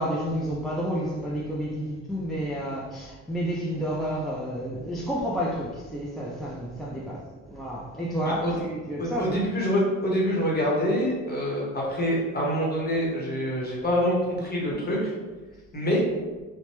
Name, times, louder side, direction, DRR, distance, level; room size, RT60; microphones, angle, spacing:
voice 1, 0.0-9.4, equal, ahead, -5 dB, 0.4 m, -30 dB
voice 2, 9.0-15.1 15.7-16.0, equal, 30° left, -4 dB, 1.1 m, -26 dB
3.0 x 2.2 x 2.9 m, 1.3 s
cardioid pair, 90°, 30 cm